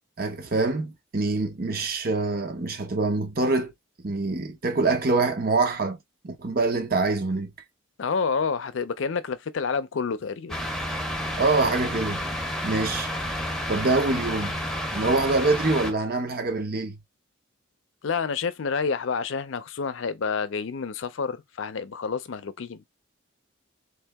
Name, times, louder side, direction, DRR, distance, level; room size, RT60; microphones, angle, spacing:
voice 1, 0.2-3.7 4.0-6.0 6.2-7.5 11.4-12.2 12.6-13.1 13.7-14.6 14.9-17.0, right 3 dB, 50° right, 0.8 m, -25 dB
voice 2, 8.0-10.6 18.0-22.8, left 5 dB, 75° left, 0.5 m, -29 dB
sound 1, 10.5-15.9, equal, ahead, 0.7 m, -30 dB
3.4 x 2.8 x 3.4 m
head